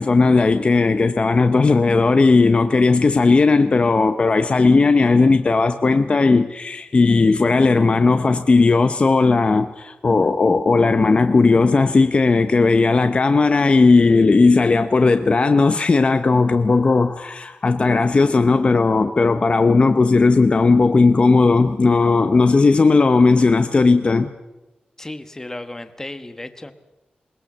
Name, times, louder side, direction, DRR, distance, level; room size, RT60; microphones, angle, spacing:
voice 1, 0.0-24.3, left 3 dB, 40° left, 0.8 m, -16 dB
voice 2, 25.0-26.7, left 2 dB, 15° left, 1.3 m, -34 dB
21.0 x 20.5 x 7.3 m
wide cardioid pair, 120°, 3 cm